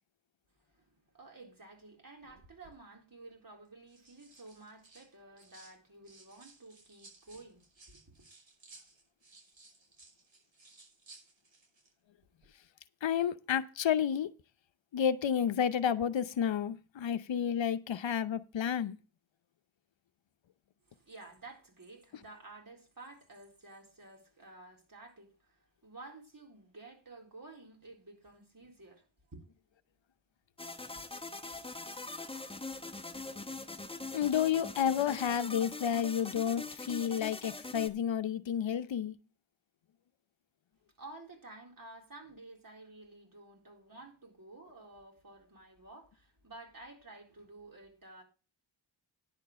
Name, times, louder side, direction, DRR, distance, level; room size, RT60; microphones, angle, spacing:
voice 1, 0.7-8.3 20.8-29.5 35.3-35.4 41.0-48.2, right 2 dB, 45° right, 4.1 m, -52 dB
sound 1, 2.3-2.8 3.6-5.7 6.0-11.9 12.2-12.5, right 3 dB, 75° right, 5.5 m, -59 dB
voice 2, 13.0-14.3 14.9-19.0 34.1-39.1, left 8 dB, 70° left, 0.7 m, -31 dB
sound 2, 30.6-37.9, left 3 dB, 10° left, 1.0 m, -43 dB
10.5 x 4.5 x 7.4 m
cardioid pair, 50°, 47 cm